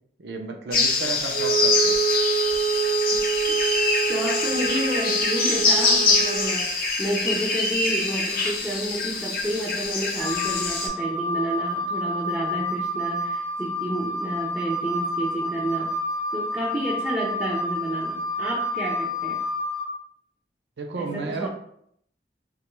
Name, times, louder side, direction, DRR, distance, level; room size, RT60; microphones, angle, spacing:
voice 1, 0.2-2.0 20.8-21.5, right 3 dB, 75° right, 3 dB, 0.5 m, -32 dB
sound 1, 0.7-10.9, left 3 dB, 50° left, 0.7 m, -24 dB
Wind instrument woodwind instrument, 1.3-6.6, right 7 dB, 40° right, 0.7 m, -26 dB
voice 2, 3.1-3.6 4.1-16.0 16.3-19.4 20.9-21.5, right 1 dB, 10° right, -5 dB, 0.4 m, -30 dB
Wind instrument woodwind instrument 2, 10.2-19.8, left 1 dB, 90° right, 1.0 m, -29 dB
2.9 x 2.3 x 3.0 m, 0.69 s
head